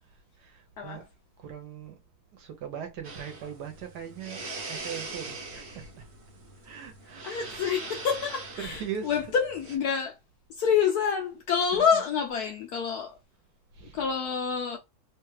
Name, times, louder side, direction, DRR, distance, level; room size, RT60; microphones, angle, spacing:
voice 1, 0.4-1.0 1.4-2.0 2.3-6.0 6.6-7.6 8.6-9.3 11.9-12.0 13.7-14.0, right 8 dB, 65° right, 1.2 m, -40 dB
sound 1, 3.0-9.8, right 3 dB, 50° right, 0.8 m, -42 dB
voice 2, 7.2-10.1 10.6-13.1 13.9-14.8, left 7 dB, 75° left, 0.9 m, -27 dB
3.1 x 2.3 x 3.1 m
omnidirectional pair, 2.1 m